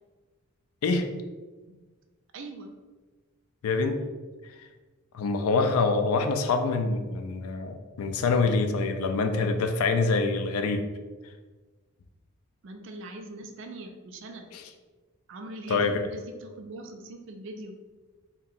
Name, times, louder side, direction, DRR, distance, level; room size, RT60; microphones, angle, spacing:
voice 1, 2.3-2.7 12.6-14.5 15.3-17.8, right 2 dB, 55° right, 5 dB, 0.4 m, -41 dB
voice 2, 3.6-4.0 4.4-4.5 5.1-10.8 14.5-14.6 15.7-16.0, left 4 dB, 80° left, 6 dB, 0.4 m, -25 dB
2.7 x 2.2 x 3.8 m, 1.3 s
head